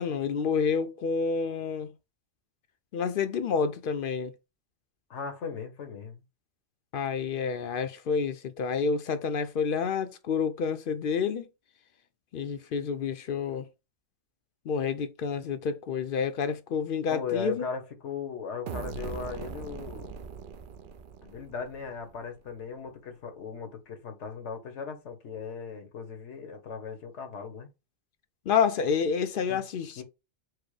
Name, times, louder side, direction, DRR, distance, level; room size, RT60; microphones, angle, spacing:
voice 1, 0.0-1.9 2.9-4.3 6.9-11.5 12.3-13.7 14.7-17.7 28.5-30.0, left 6 dB, 60° left, 0.6 m, -29 dB
voice 2, 5.1-6.2 17.1-20.2 21.2-27.7 29.5-29.6 30.0-30.1, left 6 dB, 85° left, 1.3 m, -38 dB
Dirty Hit, 18.7-22.3, right 6 dB, 60° right, 0.6 m, -40 dB
4.7 x 2.1 x 4.7 m
omnidirectional pair, 1.2 m